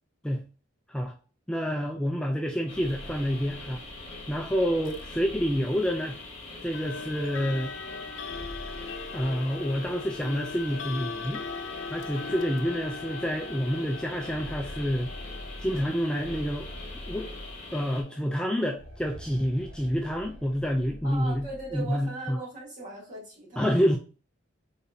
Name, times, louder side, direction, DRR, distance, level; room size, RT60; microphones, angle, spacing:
voice 1, 1.5-3.8 4.3-6.2 6.6-7.7 9.1-11.4 11.9-15.1 15.6-16.7 17.1-17.3 17.7-21.5 21.7-22.4 23.6-24.0, equal, 5° left, 1 dB, 0.4 m, -28 dB
sound 1, 2.5-6.2 8.0-10.2 10.5-10.6 11.5-11.6 12.1-12.2 13.8-18.0 18.7-22.0, equal, 75° right, 1.3 m, -45 dB
sound 2, 2.7-18.0, left 3 dB, 35° left, 1.2 m, -43 dB
sound 3, 4.8-5.1 6.7-19.6, left 4 dB, 80° left, 0.5 m, -41 dB
voice 2, 21.0-23.8, right 2 dB, 40° right, -5 dB, 2.4 m, -39 dB
4.1 x 4.0 x 2.6 m, 0.36 s
head